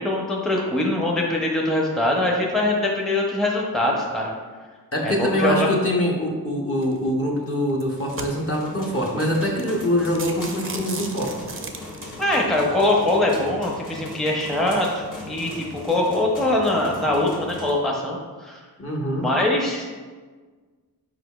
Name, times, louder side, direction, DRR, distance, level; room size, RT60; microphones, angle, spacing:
voice 1, 0.0-4.3 5.0-5.7 12.2-18.6 19.1-20.1, left 1 dB, ahead, -2 dB, 0.6 m, -23 dB
voice 2, 4.9-11.3 18.8-19.3, equal, 35° left, -1 dB, 0.8 m, -24 dB
sound 1, 6.8-7.1 7.7-8.7 9.2-9.3 9.6-9.7 10.0-12.2, right 4 dB, 35° right, 0.5 m, -35 dB
sound 2, 7.9-17.7, left 2 dB, 55° left, 1.3 m, -39 dB
4.9 x 4.4 x 2.3 m, 1.4 s
wide cardioid pair, 55°, 38 cm